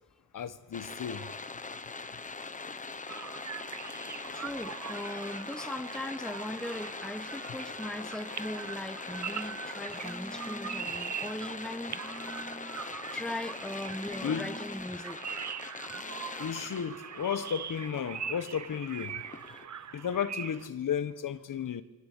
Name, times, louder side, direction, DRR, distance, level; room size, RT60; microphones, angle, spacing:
voice 1, 0.3-1.3 14.2-14.5 16.4-19.2 19.9-21.8, left 8 dB, 55° left, 1.5 m, -33 dB
sound 1, 0.7-19.7, left 4 dB, 20° left, 1.1 m, -42 dB
sound 2, 3.1-20.7, right 8 dB, 45° right, 1.0 m, -42 dB
voice 2, 4.3-12.8 13.1-15.2 15.9-16.6 19.5-19.8, left 1 dB, ahead, 1.0 m, -39 dB
28.0 x 25.0 x 8.5 m
wide cardioid pair, 150°, 38 cm